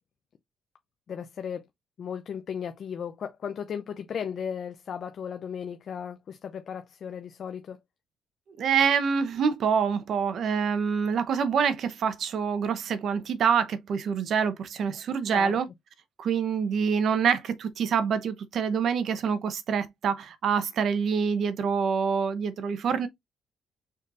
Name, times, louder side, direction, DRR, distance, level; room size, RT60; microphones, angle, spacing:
voice 1, 1.1-1.6 2.0-7.8 15.3-15.6, left 7 dB, 60° left, 0.6 m, -35 dB
voice 2, 8.6-15.7 16.2-23.1, right 6 dB, 65° right, 0.9 m, -26 dB
5.0 x 4.1 x 2.5 m
cardioid pair, 90°, 0 cm